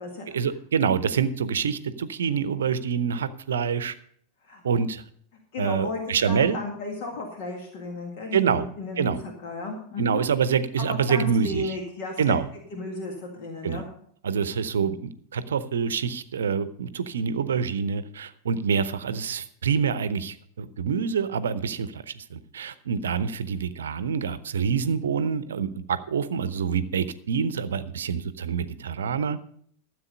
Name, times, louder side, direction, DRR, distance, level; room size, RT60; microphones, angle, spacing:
voice 1, 0.3-3.9 4.6-5.0 5.6-6.6 8.3-8.7 9.0-9.2 10.0-11.8 12.2-12.5 13.6-13.8 14.2-29.4, right 6 dB, 65° right, 14 dB, 0.7 m, -26 dB
voice 2, 5.5-10.2 10.8-12.3 12.7-13.8, left 2 dB, 50° left, 2 dB, 1.9 m, -34 dB
13.5 x 7.6 x 5.3 m, 0.62 s
figure-of-eight pair, 90°, 0 cm